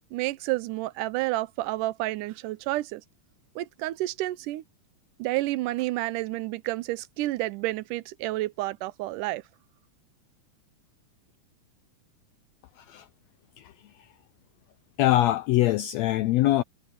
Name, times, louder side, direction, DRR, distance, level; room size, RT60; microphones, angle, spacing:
voice 1, 0.1-3.0 3.6-4.6 5.2-9.4, right 17 dB, 90° right, 2.2 m, -30 dB
voice 2, 15.0-16.6, left 15 dB, 90° left, 1.5 m, -23 dB
omnidirectional pair, 3.6 m